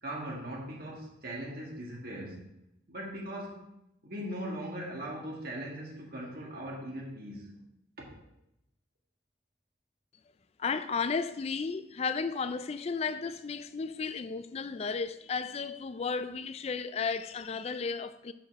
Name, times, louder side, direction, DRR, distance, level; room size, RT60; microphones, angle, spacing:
voice 1, 0.0-2.5 2.9-3.7 4.0-7.6 8.0-8.1, right 1 dB, 50° right, 1.7 m, -40 dB
voice 2, 10.6-18.3, left 5 dB, 35° left, 0.3 m, -34 dB
5.8 x 5.1 x 6.1 m
head